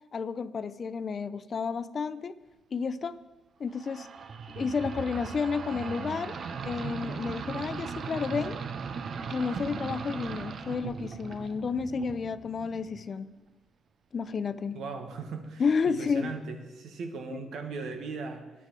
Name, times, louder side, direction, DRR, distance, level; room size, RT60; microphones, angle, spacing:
voice 1, 0.1-2.4 2.7-3.2 3.6-4.1 4.5-6.4 6.6-8.6 9.3-13.3 14.1-14.8 15.6-16.3 17.3-17.4, left 5 dB, 45° left, 15 dB, 0.5 m, -31 dB
sound 1, 3.8-13.1, right 5 dB, 55° right, 0.7 m, -38 dB
voice 2, 14.7-18.5, right 4 dB, 70° right, 6 dB, 1.4 m, -38 dB
9.8 x 8.9 x 4.7 m, 1.2 s
cardioid pair, 90°, 0 cm